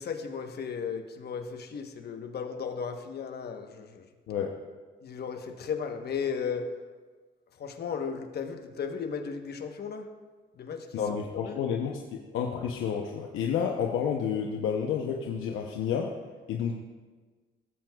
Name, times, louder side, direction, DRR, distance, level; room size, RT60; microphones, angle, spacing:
voice 1, 0.0-4.1 5.0-6.7 7.6-10.1 10.6-11.0 11.4-11.6, left 6 dB, 55° left, 6 dB, 1.1 m, -35 dB
voice 2, 10.9-16.1 16.5-16.7, left 7 dB, 85° left, 1 dB, 0.8 m, -30 dB
16.5 x 7.7 x 2.3 m, 1.4 s
cardioid pair, 90°, 20 cm